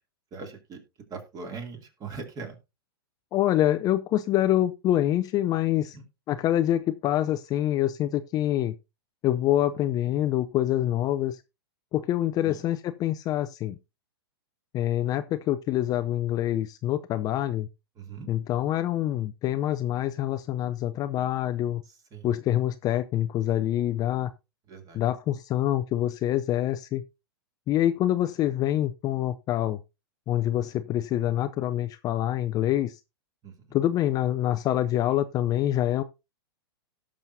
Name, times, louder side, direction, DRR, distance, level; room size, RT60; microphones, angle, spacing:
voice 1, 0.3-0.8 1.1-2.6 5.9-6.0 12.4-12.6 18.0-18.3 22.1-22.3 24.7-25.0 33.4-33.5, right 4 dB, 30° right, 2.6 m, -40 dB
voice 2, 3.3-6.0 6.3-8.7 9.2-11.4 11.9-13.8 14.7-17.7 18.3-21.8 22.2-24.3 24.9-27.0 27.7-29.8 30.3-33.0 33.7-36.0, left 12 dB, 30° left, 0.5 m, -26 dB
17.5 x 6.2 x 2.7 m
hypercardioid pair, 110°, 13 cm